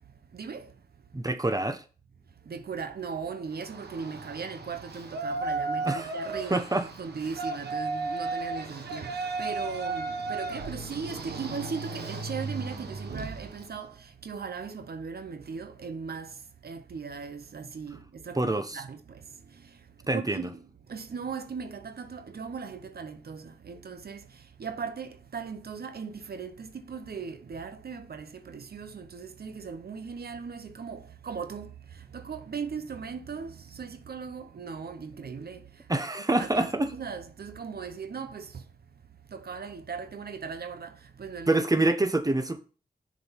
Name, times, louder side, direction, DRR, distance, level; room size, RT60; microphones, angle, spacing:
voice 1, 0.3-0.7 2.4-6.7 7.0-19.8 20.1-20.6 20.9-35.9 36.1-38.7 39.3-41.6, right 5 dB, 70° right, 0.8 m, -38 dB
voice 2, 1.1-1.8 5.8-6.1 6.5-6.9 18.3-18.8 20.1-20.5 35.9-36.9 41.5-42.6, right 2 dB, 20° right, 1.1 m, -26 dB
Yell, 3.5-13.7, right 3 dB, 90° right, 1.2 m, -35 dB
6.9 x 5.1 x 5.7 m
cardioid pair, 55°, 17 cm